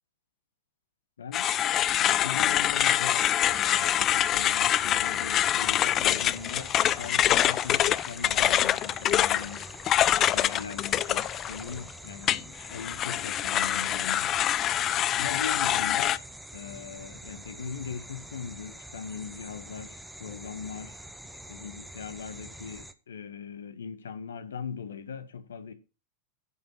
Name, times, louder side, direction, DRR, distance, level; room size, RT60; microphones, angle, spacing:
voice 1, 1.2-1.5 2.0-9.7 10.2-14.3 15.2-16.2 16.5-21.0 21.5-25.7, left 6 dB, 65° left, 1.3 m, -40 dB
sound 1, 1.3-11.8 12.3-16.2, left 11 dB, 30° left, 0.4 m, -25 dB
sound 2, 3.5-22.9, right 1 dB, 5° right, 0.9 m, -45 dB
9.8 x 5.4 x 5.9 m
figure-of-eight pair, 90°, 0 cm